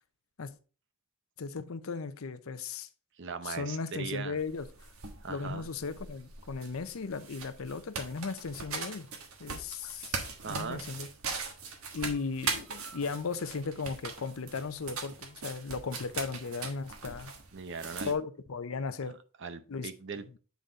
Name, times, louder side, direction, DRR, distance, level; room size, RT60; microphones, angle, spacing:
voice 1, 1.4-2.9 3.4-4.7 5.3-9.1 9.4-10.2 10.5-11.1 11.9-17.3 18.0-19.1 19.7-19.9, left 4 dB, 75° left, 0.6 m, -36 dB
voice 2, 3.2-4.4 5.2-5.7 10.4-10.8 17.5-18.1 19.4-20.4, right 5 dB, 55° right, 0.7 m, -39 dB
sound 1, 4.4-18.1, right 5 dB, 80° right, 1.3 m, -41 dB
8.2 x 3.9 x 3.9 m
head